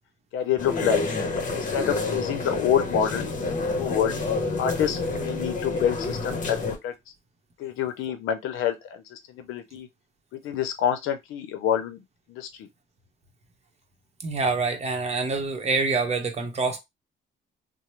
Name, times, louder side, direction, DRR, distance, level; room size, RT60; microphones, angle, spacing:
voice 1, 0.3-1.0 1.5-4.2 4.6-6.6 6.8-6.9 7.6-9.9 10.4-12.0 12.3-12.7, left 9 dB, 90° left, 0.6 m, -27 dB
sound 1, 0.6-6.8, left 3 dB, 40° left, 0.9 m, -28 dB
voice 2, 14.2-16.8, right 4 dB, 35° right, 0.9 m, -26 dB
2.9 x 2.1 x 3.0 m
cardioid pair, 90°, 20 cm